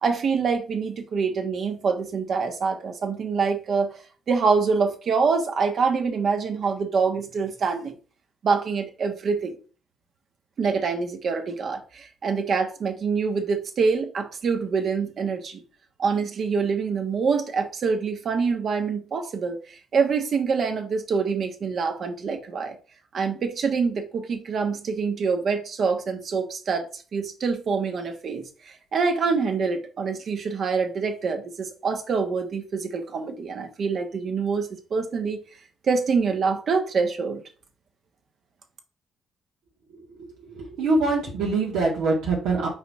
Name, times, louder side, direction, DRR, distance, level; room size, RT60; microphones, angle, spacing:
voice 1, 0.0-4.0 4.3-8.0 8.4-9.5 10.6-15.6 16.0-22.7 23.1-35.4 35.8-37.4, right 5 dB, 55° right, 1.3 m, -25 dB
voice 2, 40.1-42.7, right 3 dB, 90° right, 2.1 m, -24 dB
5.6 x 4.3 x 4.2 m
cardioid pair, 90°, 0 cm